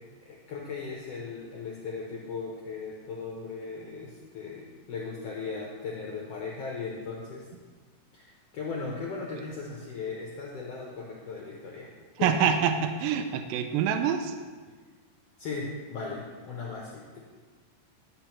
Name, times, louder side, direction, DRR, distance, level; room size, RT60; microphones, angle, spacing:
voice 1, 0.2-7.5 8.1-11.9 12.2-12.5 15.4-17.2, left 4 dB, 80° left, -3 dB, 1.4 m, -37 dB
voice 2, 12.2-14.4, right 8 dB, 85° right, 7 dB, 2.2 m, -26 dB
10.5 x 7.3 x 3.0 m, 1.4 s
omnidirectional pair, 4.0 m